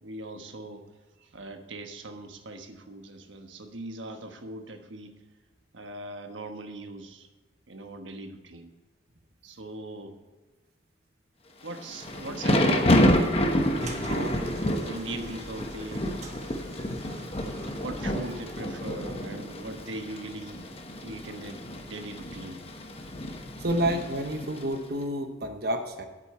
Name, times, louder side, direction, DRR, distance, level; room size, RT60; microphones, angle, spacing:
voice 1, 0.0-0.8 1.3-5.1 5.7-7.3 7.7-8.7 9.4-10.2 11.6-13.6 14.0-14.5 14.8-16.1 17.4-20.6 21.0-22.6, right 2 dB, 80° right, 6 dB, 1.2 m, -40 dB
Thunder / Rain, 11.7-24.8, left 1 dB, 30° left, 1.1 m, -29 dB
sound 1, 13.8-18.9, right 1 dB, 35° right, 1.2 m, -44 dB
voice 2, 23.6-26.0, right 1 dB, 55° right, 5 dB, 1.0 m, -29 dB
10.5 x 8.3 x 4.3 m, 1.3 s
head